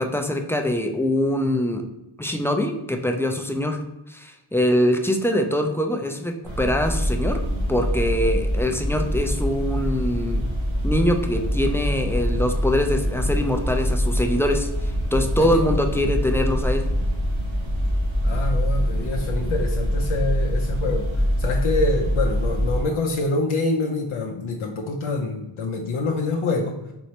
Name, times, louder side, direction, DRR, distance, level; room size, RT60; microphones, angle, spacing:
voice 1, 0.0-1.8 2.2-3.8 4.1-7.4 7.7-10.5 10.8-16.8, left 1 dB, 5° left, 4 dB, 0.4 m, -23 dB
sound 1, 6.4-22.8, equal, 75° right, 1.3 m, -24 dB
voice 2, 15.4-15.8 18.2-26.8, left 2 dB, 85° left, 0 dB, 0.6 m, -26 dB
4.4 x 3.1 x 2.8 m, 0.97 s
wide cardioid pair, 80°, 48 cm